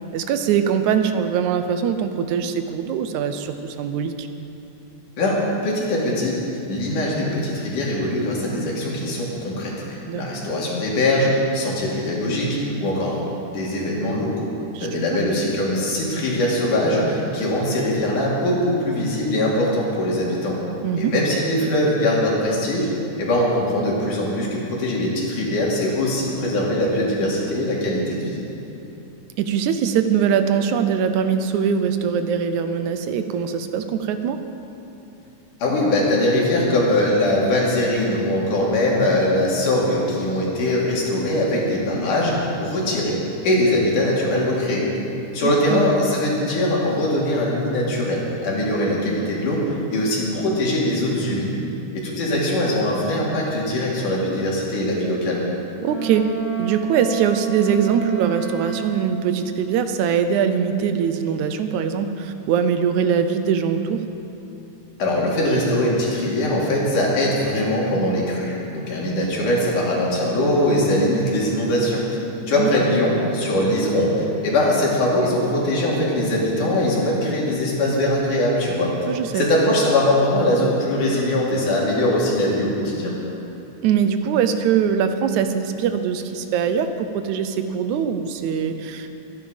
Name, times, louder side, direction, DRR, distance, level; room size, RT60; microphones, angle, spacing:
voice 1, 0.1-4.3 10.1-10.2 14.7-15.2 20.8-21.2 29.4-34.4 45.4-45.8 55.8-56.3 56.6-64.1 72.6-72.7 79.1-79.4 83.8-89.1, right 7 dB, 75° right, 9 dB, 2.1 m, -22 dB
voice 2, 5.2-6.3 6.7-13.2 13.5-14.3 14.8-20.6 21.0-22.9 23.2-28.4 35.6-43.2 43.4-44.9 45.3-51.6 51.9-55.4 65.0-83.1, left 1 dB, 85° left, -4 dB, 4.3 m, -21 dB
Wind instrument woodwind instrument, 55.8-59.3, right 7 dB, 45° left, 2.1 m, -29 dB
23.5 x 10.0 x 5.2 m, 2.9 s
omnidirectional pair, 3.5 m